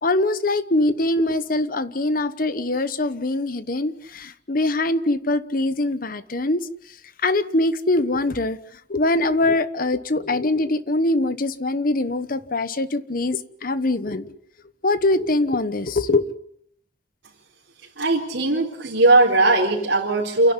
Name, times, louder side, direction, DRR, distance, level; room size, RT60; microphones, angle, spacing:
voice 1, 0.0-7.0 7.2-14.3 14.8-16.2, left 2 dB, 50° left, 13 dB, 1.1 m, -23 dB
voice 2, 18.0-20.5, right 2 dB, 65° right, -5 dB, 4.4 m, -18 dB
29.0 x 11.5 x 9.9 m, 0.70 s
head